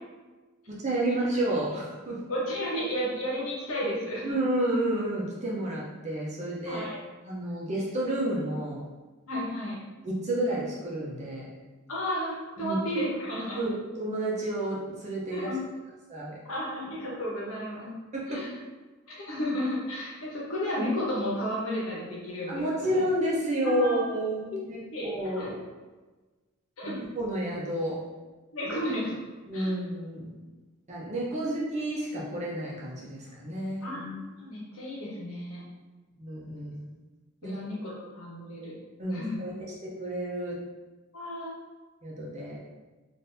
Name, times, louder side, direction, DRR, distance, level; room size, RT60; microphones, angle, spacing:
voice 1, 0.7-2.2 4.2-6.8 7.2-8.8 10.0-11.5 12.6-12.8 13.5-15.5 16.1-16.4 18.1-18.4 22.5-25.6 26.8-28.0 29.5-30.3 30.9-33.9 36.2-36.9 37.4-37.6 39.0-40.6 42.0-42.6, right 1 dB, 30° right, -5 dB, 0.7 m, -30 dB
voice 2, 2.3-4.4 6.7-7.0 9.3-9.8 11.9-13.6 15.3-15.6 16.4-17.9 18.3-18.6 19.1-22.9 23.6-24.0 24.5-24.6 24.9-25.5 26.8-27.0 28.5-29.2 29.5-29.7 33.8-35.6 37.4-38.8 39.1-39.4 41.1-41.5, equal, 75° left, -4 dB, 1.1 m, -33 dB
3.8 x 2.6 x 2.7 m, 1.3 s
head